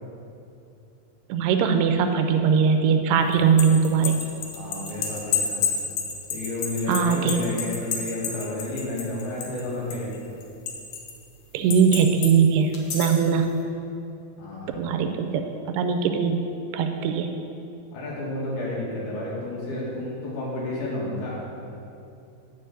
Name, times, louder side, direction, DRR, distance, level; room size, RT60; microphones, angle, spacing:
voice 1, 1.3-4.2 6.9-7.4 11.5-13.5 14.7-16.5 16.7-17.3, right 6 dB, 80° right, 6 dB, 2.5 m, -21 dB
cay kasigi kisaltilmis HQ, 3.3-9.6 9.9-11.1 11.7-12.3 12.7-13.3, left 6 dB, 85° left, 1.5 m, -29 dB
voice 2, 4.5-5.6 6.3-10.1 14.4-14.7 17.9-21.4, left 2 dB, 70° left, -6 dB, 3.9 m, -31 dB
9.5 x 5.0 x 7.6 m, 2.6 s
omnidirectional pair, 4.8 m